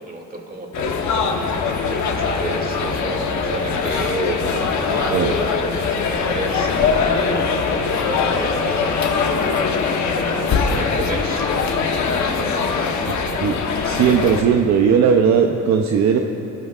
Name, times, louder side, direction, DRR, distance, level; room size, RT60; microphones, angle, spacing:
voice 1, 0.0-9.2 9.5-11.5 12.0-12.9, right 1 dB, 30° right, 1 dB, 2.4 m, -31 dB
sound 1, 0.7-14.4, left 5 dB, 70° left, 1.1 m, -22 dB
sound 2, 1.6-14.4, equal, 5° left, 2.0 m, -42 dB
voice 2, 13.4-16.2, right 7 dB, 65° right, 4 dB, 0.7 m, -17 dB
19.5 x 13.5 x 2.5 m, 3.0 s
cardioid pair, 90°, 30 cm